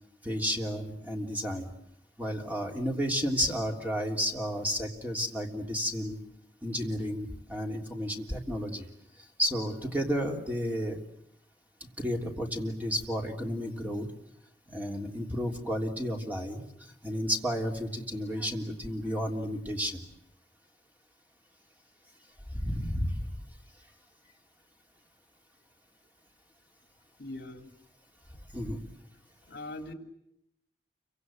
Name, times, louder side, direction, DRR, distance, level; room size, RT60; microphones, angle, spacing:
voice 1, 0.2-1.7 2.2-6.2 6.6-8.9 9.4-11.0 12.0-14.1 14.7-16.6 17.0-20.0 22.5-23.3 28.5-28.8, equal, 10° right, 1 dB, 3.3 m, -32 dB
voice 2, 27.2-27.7 29.5-29.9, left 2 dB, 60° left, 6 dB, 3.4 m, -41 dB
29.5 x 25.0 x 7.8 m, 0.78 s
head